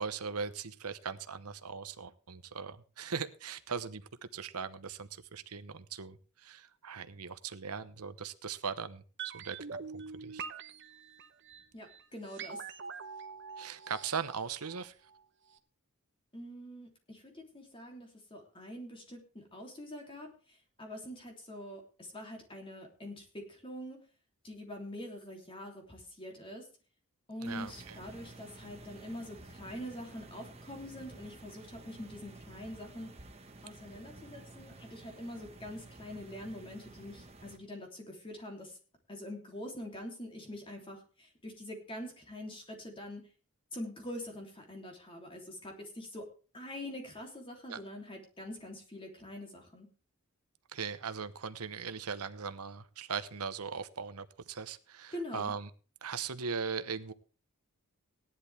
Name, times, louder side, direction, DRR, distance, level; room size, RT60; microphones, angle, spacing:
voice 1, 0.0-9.6 9.9-10.4 13.6-15.0 27.4-28.0 47.7-47.8 50.7-55.7 56.0-57.1, right 6 dB, 85° right, 1.0 m, -39 dB
sound 1, 9.2-15.2 15.5-15.6, right 5 dB, 55° right, 1.0 m, -45 dB
voice 2, 11.7-12.6 16.3-24.0 24.4-26.7 27.3-33.2 33.6-38.8 39.1-43.2 43.7-46.3 46.5-49.9 55.1-55.5, left 1 dB, 25° left, 3.2 m, -45 dB
sound 2, 27.4-37.6, right 2 dB, 30° right, 1.5 m, -52 dB
17.0 x 11.0 x 3.5 m
head